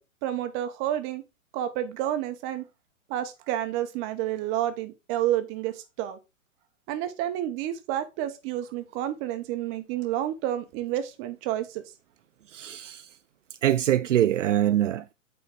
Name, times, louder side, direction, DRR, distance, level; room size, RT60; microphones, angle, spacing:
voice 1, 0.2-1.2 1.5-2.6 3.1-6.2 6.9-11.8, right 12 dB, 30° right, 1.0 m, -30 dB
voice 2, 12.5-13.1 13.6-15.1, right 12 dB, 70° right, 0.5 m, -24 dB
8.4 x 4.0 x 3.6 m
figure-of-eight pair, 110°, 39 cm